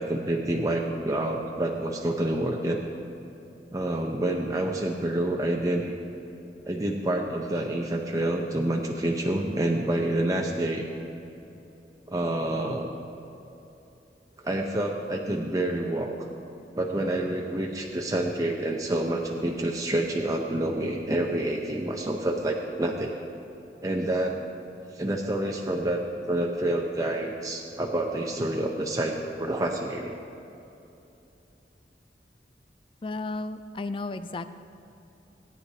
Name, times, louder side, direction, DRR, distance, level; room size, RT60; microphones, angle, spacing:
voice 1, 0.0-2.8 3.7-5.9 6.6-10.9 12.1-13.0 14.4-16.3 16.7-23.2 23.8-24.4 24.9-30.1, right 1 dB, 20° right, 0 dB, 0.6 m, -28 dB
voice 2, 33.0-34.5, left 2 dB, 30° left, 11 dB, 0.4 m, -33 dB
17.5 x 9.9 x 2.8 m, 2.9 s
head